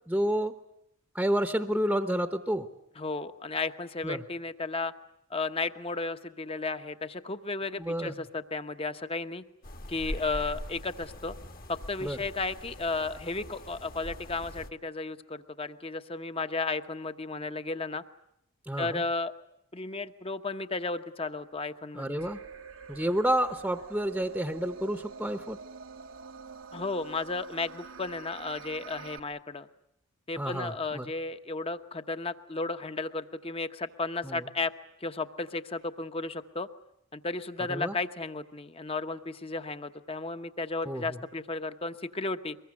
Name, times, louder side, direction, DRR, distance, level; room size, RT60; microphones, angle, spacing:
voice 1, 0.1-0.5 1.1-2.7 4.0-4.2 7.8-8.1 12.0-12.2 18.7-19.0 21.9-22.4 22.9-25.6 30.4-31.1 34.2-34.4 37.7-37.9 40.8-41.2, equal, 5° right, 8 dB, 1.0 m, -30 dB
voice 2, 3.0-4.9 5.3-9.4 9.9-11.3 11.7-18.0 18.8-19.3 19.7-22.2 26.7-29.7 30.3-34.7 35.0-36.7 37.1-42.6, left 3 dB, 30° left, 9 dB, 1.1 m, -34 dB
sound 1, 9.6-14.7, left 1 dB, 45° left, 1.7 m, -42 dB
sound 2, 22.2-29.2, right 5 dB, 80° right, 1.3 m, -46 dB
24.0 x 21.5 x 9.7 m, 0.76 s
head